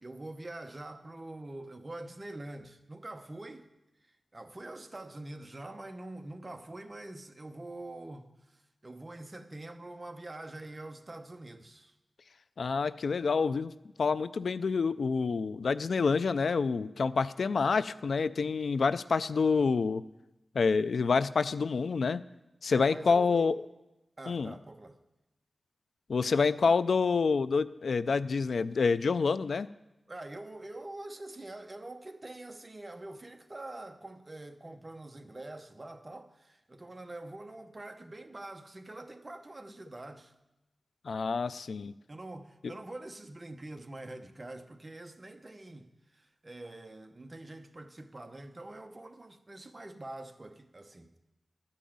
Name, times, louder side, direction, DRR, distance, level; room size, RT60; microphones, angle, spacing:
voice 1, 0.0-3.7 4.0-11.9 22.7-23.6 24.2-25.0 30.1-40.3 42.1-51.1, right 2 dB, 30° right, 0.9 m, -45 dB
voice 2, 12.6-13.7 14.0-20.0 20.5-22.2 22.6-23.5 24.3-24.5 26.1-29.7 41.1-41.9 42.6-42.7, left 5 dB, 80° left, 0.3 m, -27 dB
12.5 x 5.5 x 8.6 m
wide cardioid pair, 105°, 0 cm